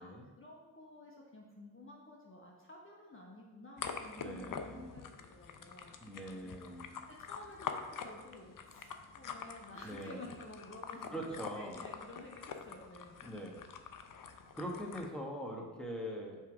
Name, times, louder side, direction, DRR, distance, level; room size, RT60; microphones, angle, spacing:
voice 1, 0.0-6.0 6.3-13.2 14.6-14.8, left 2 dB, 25° left, -2 dB, 1.2 m, -53 dB
sound 1, 3.8-15.1, left 6 dB, 45° left, 0.7 m, -46 dB
voice 2, 4.2-5.0 6.0-6.9 9.8-10.3 11.1-11.8 13.2-13.6 14.5-16.4, equal, ahead, -1 dB, 1.6 m, -42 dB
7.5 x 3.4 x 4.8 m, 1.3 s
hypercardioid pair, 45°, 48 cm